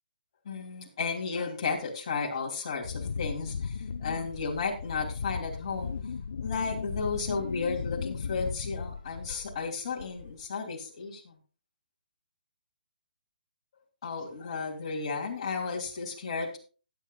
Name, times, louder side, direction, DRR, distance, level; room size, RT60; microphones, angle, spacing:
voice 1, 0.4-6.0 6.4-11.3 14.0-16.6, left 4 dB, 30° left, -1 dB, 2.9 m, -33 dB
Wind, 2.8-9.7 10.0-10.5, left 5 dB, 55° left, 0.7 m, -36 dB
17.0 x 9.5 x 2.3 m, 0.36 s
hypercardioid pair, 175°, 5 cm